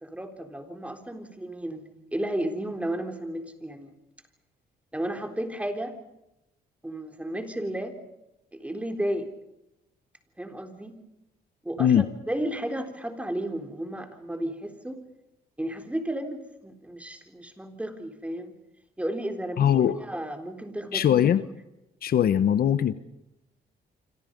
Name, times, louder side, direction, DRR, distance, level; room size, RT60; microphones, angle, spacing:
voice 1, 0.0-1.8 2.1-3.9 4.9-6.0 6.8-7.9 8.5-9.3 10.4-11.0 11.6-15.0 15.6-18.5 19.0-19.7 20.0-21.0, right 1 dB, 5° right, 6 dB, 3.7 m, -33 dB
voice 2, 19.6-20.0 20.9-21.4 22.0-22.9, left 9 dB, 60° left, 13 dB, 1.1 m, -21 dB
27.0 x 26.5 x 5.3 m, 0.88 s
cardioid pair, 110°, 18 cm